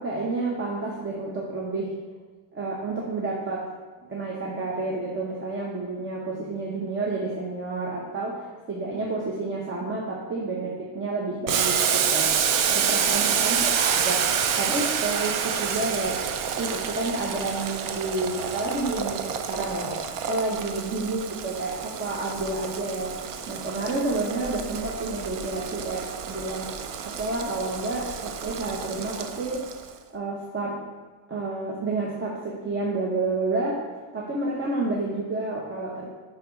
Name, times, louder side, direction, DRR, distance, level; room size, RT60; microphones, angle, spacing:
voice 1, 0.0-1.9 2.5-3.7 4.1-14.2 14.6-16.2 16.6-20.0 20.3-23.2 23.5-26.7 27.0-29.7 30.1-30.8 31.3-33.8 34.1-36.0, right 2 dB, 25° right, -3 dB, 0.8 m, -30 dB
Boiling, 11.5-29.9, right 7 dB, 45° right, 0.4 m, -28 dB
6.6 x 3.6 x 5.0 m, 1.3 s
cardioid pair, 140°, 50 cm